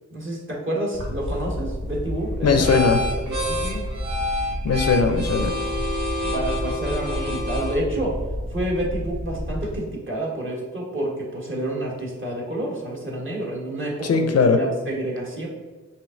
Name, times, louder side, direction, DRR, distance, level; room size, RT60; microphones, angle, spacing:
voice 1, 0.1-2.7 3.2-3.8 6.2-8.1 8.5-15.5, right 1 dB, 40° right, -3 dB, 1.5 m, -29 dB
sound 1, 0.9-9.8, left 1 dB, 70° right, 1.3 m, -27 dB
voice 2, 2.4-3.0 4.6-5.5 14.0-14.6, left 4 dB, 55° left, 6 dB, 0.5 m, -19 dB
5.0 x 2.7 x 3.8 m, 1.3 s
cardioid pair, 65°, 30 cm